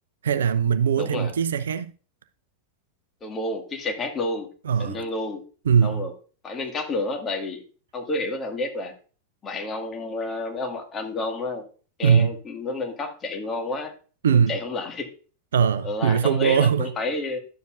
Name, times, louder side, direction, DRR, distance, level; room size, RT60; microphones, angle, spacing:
voice 1, 0.2-1.9 4.7-5.0 5.7-6.1 12.0-12.4 14.2-14.6 15.5-16.9, right 7 dB, 65° right, 0.4 m, -21 dB
voice 2, 1.0-1.3 3.2-4.5 4.8-5.5 5.8-6.1 6.4-7.7 7.9-8.9 9.4-11.7 12.0-13.9 14.3-15.1 15.8-17.4, left 2 dB, 20° left, 1.8 m, -30 dB
11.0 x 7.2 x 2.5 m
figure-of-eight pair, 90°, 0 cm